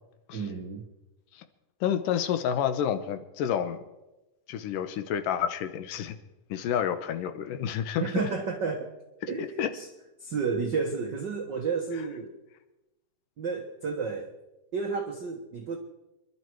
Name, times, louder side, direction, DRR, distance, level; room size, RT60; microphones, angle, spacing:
voice 1, 0.3-0.8 8.0-8.9 9.3-9.9 10.2-12.3 13.4-14.3 14.7-15.8, right 5 dB, 65° right, 2 dB, 1.0 m, -31 dB
voice 2, 1.8-3.8 4.5-6.2 6.5-8.0 9.4-9.7, left 9 dB, 80° left, 8 dB, 2.5 m, -29 dB
26.5 x 12.0 x 4.6 m, 1.0 s
omnidirectional pair, 3.9 m